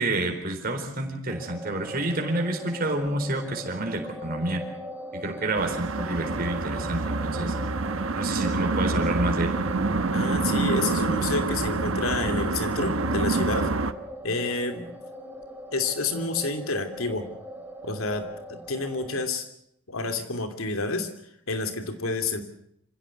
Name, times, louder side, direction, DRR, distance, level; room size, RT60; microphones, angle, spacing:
voice 1, 0.0-4.6 5.1-7.6 8.1-9.6, right 2 dB, 40° right, 3 dB, 4.1 m, -29 dB
sound 1, 1.3-19.3, equal, 10° right, 3.5 m, -40 dB
sound 2, 5.6-13.9, right 3 dB, 70° right, 1.1 m, -27 dB
voice 2, 10.1-13.7 14.2-14.9 15.7-17.3 17.8-19.5 19.9-21.1 21.5-22.4, left 3 dB, 70° left, 8 dB, 2.9 m, -29 dB
26.0 x 16.5 x 8.2 m, 0.74 s
head